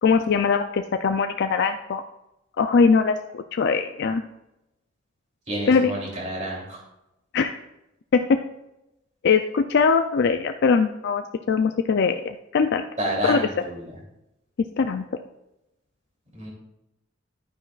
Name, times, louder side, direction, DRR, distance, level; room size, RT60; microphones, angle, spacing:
voice 1, 0.0-2.0 2.6-4.2 5.7-5.9 7.3-7.5 8.1-8.4 9.2-12.8 13.2-13.5 14.8-15.1, left 5 dB, 60° left, 7 dB, 0.4 m, -21 dB
voice 2, 5.5-6.8 13.0-13.9 16.3-16.5, right 1 dB, 35° right, -2 dB, 3.0 m, -29 dB
10.5 x 9.2 x 2.4 m, 0.90 s
head